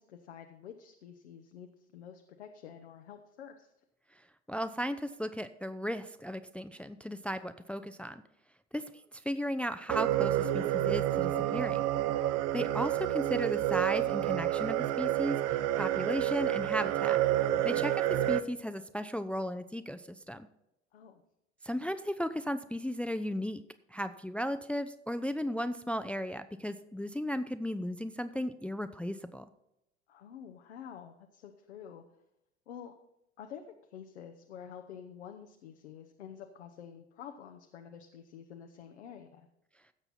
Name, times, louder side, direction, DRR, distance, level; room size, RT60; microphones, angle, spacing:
voice 1, 0.1-3.7 17.5-17.9 20.9-21.2 30.1-32.0 32.7-32.9 33.4-33.6 33.9-39.5, left 8 dB, 80° left, 4 dB, 0.9 m, -49 dB
voice 2, 4.5-8.2 8.7-8.8 9.1-11.8 12.5-17.2 17.6-20.5 21.6-23.6 23.9-29.4, equal, 5° left, 11 dB, 0.5 m, -35 dB
sound 1, 9.9-18.4, right 13 dB, 50° right, 0.7 m, -29 dB
16.5 x 6.8 x 4.2 m, 0.84 s
hypercardioid pair, 70°, 33 cm